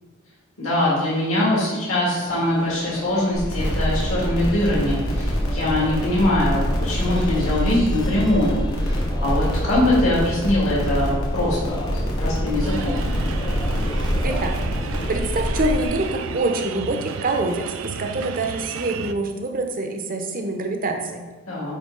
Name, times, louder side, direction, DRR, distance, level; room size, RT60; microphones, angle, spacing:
voice 1, 0.6-11.8 12.2-13.0 21.5-21.7, left 1 dB, 70° left, -6 dB, 2.2 m, -22 dB
sound 1, 2.2-15.2, left 1 dB, 20° left, 0.5 m, -35 dB
sound 2, 3.3-15.8, equal, 85° left, 1.7 m, -25 dB
sound 3, 12.6-19.1, right 6 dB, 65° right, 0.4 m, -33 dB
voice 2, 14.2-14.5 15.1-21.3, right 2 dB, 40° right, 4 dB, 0.8 m, -25 dB
9.4 x 3.4 x 3.8 m, 1.2 s
head